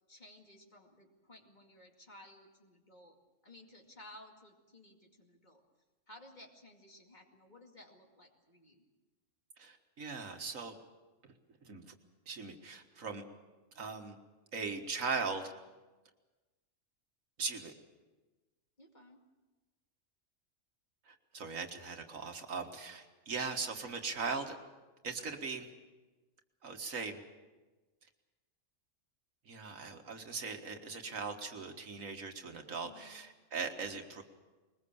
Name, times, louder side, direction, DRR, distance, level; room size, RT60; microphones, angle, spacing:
voice 1, 0.1-3.2 3.4-5.6 6.1-8.8 18.8-19.2 32.8-33.2, left 1 dB, 35° left, 2 dB, 2.5 m, -57 dB
voice 2, 9.6-10.8 11.6-11.9 12.3-13.2 13.8-14.2 14.5-15.5 17.4-17.7 21.1-24.6 25.0-25.7 26.6-27.2 29.5-34.2, right 4 dB, 85° right, 5 dB, 2.0 m, -39 dB
21.5 x 20.5 x 7.1 m, 1.2 s
omnidirectional pair, 1.3 m